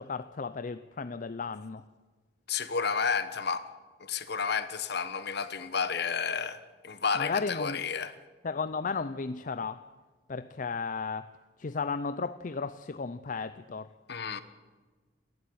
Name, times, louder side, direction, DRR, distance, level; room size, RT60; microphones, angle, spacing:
voice 1, 0.0-1.8 7.1-7.8 8.4-9.8 10.3-11.3 11.6-13.9, left 4 dB, 45° left, 0.6 m, -34 dB
voice 2, 2.5-3.6 4.0-8.1 14.1-14.4, left 5 dB, 60° left, 1.3 m, -31 dB
28.0 x 12.0 x 8.7 m
head